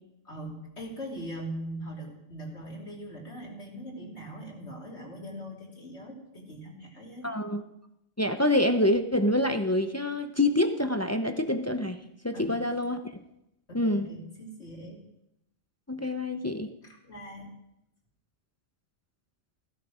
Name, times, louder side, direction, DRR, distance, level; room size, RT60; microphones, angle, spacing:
voice 1, 0.3-7.3 12.3-12.6 13.7-15.0 16.0-16.1 16.8-17.5, right 1 dB, 55° left, -2 dB, 3.5 m, -41 dB
voice 2, 7.2-7.6 8.2-13.2 13.7-14.1 15.9-16.7, left 1 dB, 25° left, 7 dB, 0.3 m, -26 dB
14.5 x 13.0 x 5.0 m, 0.83 s
omnidirectional pair, 1.4 m